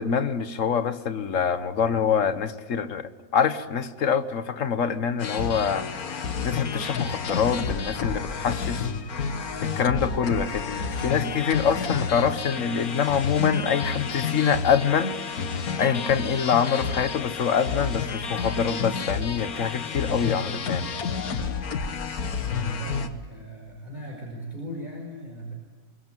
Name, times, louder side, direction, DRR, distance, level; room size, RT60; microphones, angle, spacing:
voice 1, 0.0-9.2 9.6-15.4 15.8-20.9, left 7 dB, 60° left, 1.5 m, -25 dB
sound 1, 5.2-23.1, left 5 dB, 85° left, 1.9 m, -30 dB
voice 2, 22.4-25.5, right 1 dB, 30° right, 5.0 m, -37 dB
24.0 x 23.0 x 9.2 m
omnidirectional pair, 1.5 m